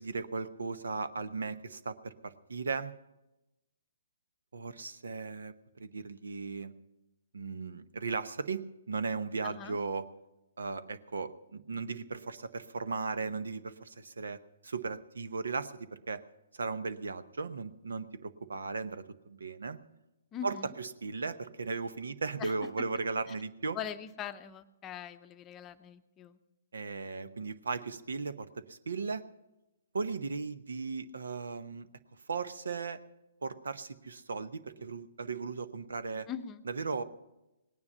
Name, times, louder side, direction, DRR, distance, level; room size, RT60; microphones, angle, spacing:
voice 1, 0.0-2.9 4.5-6.7 7.3-10.1 10.6-16.2 16.5-19.8 20.4-23.8 26.7-29.2 29.9-31.9 32.3-33.0 33.4-36.3 36.7-37.0, right 4 dB, 70° right, 13 dB, 0.9 m, -37 dB
voice 2, 9.4-9.8 20.3-20.7 22.4-22.5 23.7-26.4 36.3-36.6, left 8 dB, 20° left, 9 dB, 0.7 m, -41 dB
18.5 x 9.7 x 5.6 m, 0.96 s
figure-of-eight pair, 130°, 0 cm